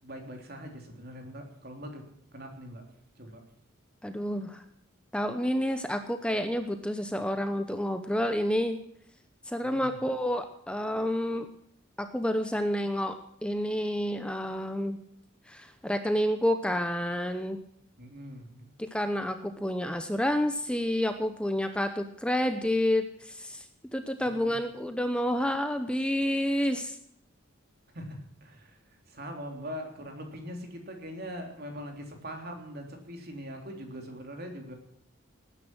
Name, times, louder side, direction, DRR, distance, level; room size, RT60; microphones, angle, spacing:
voice 1, 0.0-2.1 2.3-2.8 3.2-3.4 9.6-10.0 18.0-18.7 24.2-24.6 27.9-34.7, equal, 50° right, 3 dB, 3.5 m, -42 dB
voice 2, 4.0-4.6 5.1-8.8 9.5-11.5 12.0-13.2 13.4-15.0 15.5-17.6 18.9-23.6 23.9-27.0, equal, 5° left, 8 dB, 0.8 m, -29 dB
19.0 x 10.0 x 6.1 m, 0.71 s
head